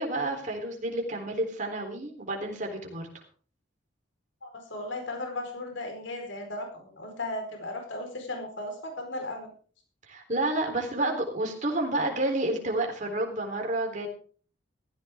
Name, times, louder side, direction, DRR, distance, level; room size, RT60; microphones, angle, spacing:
voice 1, 0.0-3.1 10.1-14.1, right 2 dB, 40° right, 2 dB, 3.8 m, -30 dB
voice 2, 4.4-9.5, left 2 dB, 75° left, 3 dB, 4.7 m, -36 dB
16.5 x 15.0 x 3.7 m, 0.43 s
head